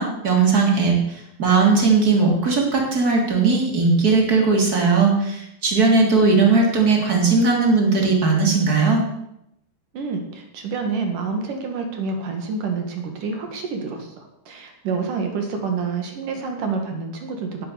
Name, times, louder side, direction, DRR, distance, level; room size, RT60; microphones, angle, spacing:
voice 1, 0.0-9.0, right 4 dB, 25° right, 1 dB, 3.0 m, -18 dB
voice 2, 9.9-17.7, right 4 dB, 55° right, 4 dB, 3.2 m, -28 dB
17.0 x 9.0 x 6.8 m, 0.81 s
omnidirectional pair, 4.9 m